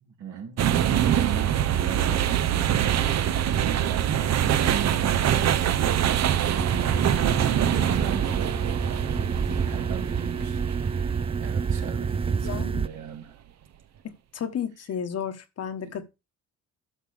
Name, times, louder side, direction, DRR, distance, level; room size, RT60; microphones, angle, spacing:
voice 1, 0.0-3.1 3.9-7.2 7.4-8.7 9.0-13.4 15.8-15.9, right 7 dB, 75° right, 2.6 m, -39 dB
sound 1, 0.6-12.6, right 10 dB, 60° right, 0.8 m, -24 dB
sound 2, 6.6-12.9, right 6 dB, 20° right, 0.4 m, -28 dB
voice 2, 12.4-12.9 14.0-16.0, left 8 dB, 55° left, 1.2 m, -33 dB
12.0 x 6.1 x 3.4 m
cardioid pair, 90°, 30 cm